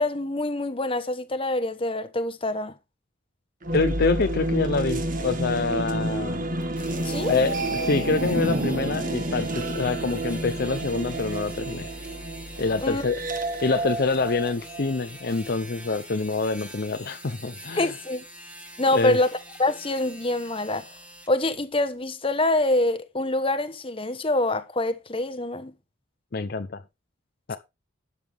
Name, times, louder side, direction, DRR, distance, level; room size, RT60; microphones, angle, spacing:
voice 1, 0.0-2.7 7.0-7.3 12.8-13.0 17.8-18.2 18.8-19.3 19.6-20.9 21.3-25.7, left 2 dB, 25° left, 1.1 m, -25 dB
sound 1, 3.6-15.5, right 1 dB, 40° right, 1.4 m, -29 dB
voice 2, 3.7-6.4 7.3-11.9 12.6-13.2 13.6-17.9 18.9-19.2 26.3-26.8 27.5-27.6, left 4 dB, 50° left, 0.6 m, -26 dB
sound 2, 6.6-21.3, equal, 5° right, 1.5 m, -45 dB
12.5 x 7.9 x 3.5 m
head